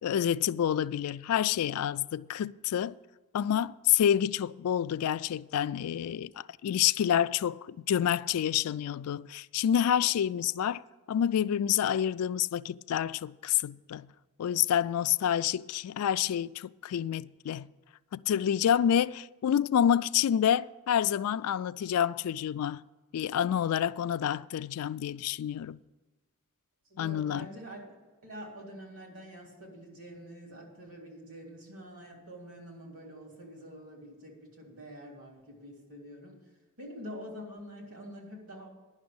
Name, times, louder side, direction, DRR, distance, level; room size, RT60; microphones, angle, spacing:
voice 1, 0.0-3.0 3.3-10.8 11.1-14.1 14.4-17.7 18.1-22.8 23.1-25.8 27.0-27.5, left 9 dB, 85° left, 0.3 m, -28 dB
voice 2, 26.9-27.9 28.2-36.4 36.8-38.7, equal, 70° right, 3.1 m, -46 dB
10.5 x 6.1 x 8.7 m
head